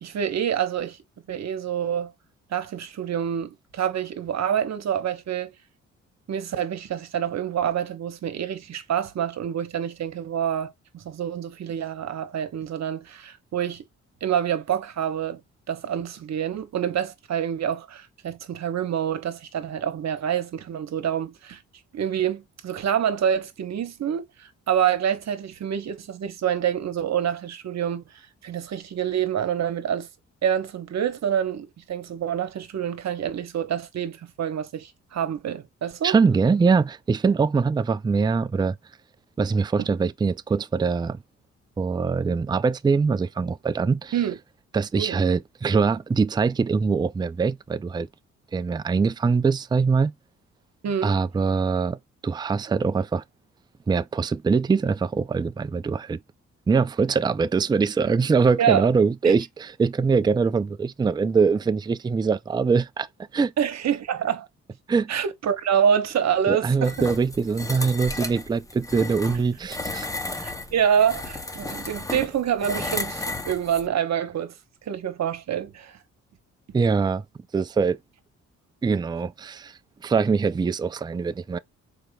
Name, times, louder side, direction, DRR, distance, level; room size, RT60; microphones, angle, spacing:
voice 1, 0.0-1.0 1.3-2.1 2.5-5.5 6.3-13.8 14.2-15.4 15.7-21.6 21.9-28.0 28.4-30.1 30.4-36.1 39.8-39.9 44.1-44.3 45.0-45.2 50.8-51.1 58.6-58.9 59.2-59.3 63.6-64.5 65.1-67.1 70.4-74.5 74.9-76.0, right 9 dB, 60° right, 1.1 m, -27 dB
voice 2, 36.0-38.8 39.4-41.2 41.8-44.1 44.7-48.1 48.5-50.1 51.0-52.0 52.2-53.2 53.9-56.2 56.7-63.1 63.3-63.5 64.9-65.1 66.5-70.1 76.7-77.2 77.5-78.0 78.8-81.6, right 5 dB, 15° right, 0.4 m, -23 dB
sound 1, 66.8-73.9, left 2 dB, 10° left, 0.9 m, -33 dB
4.9 x 4.3 x 2.2 m
cardioid pair, 75°, 30 cm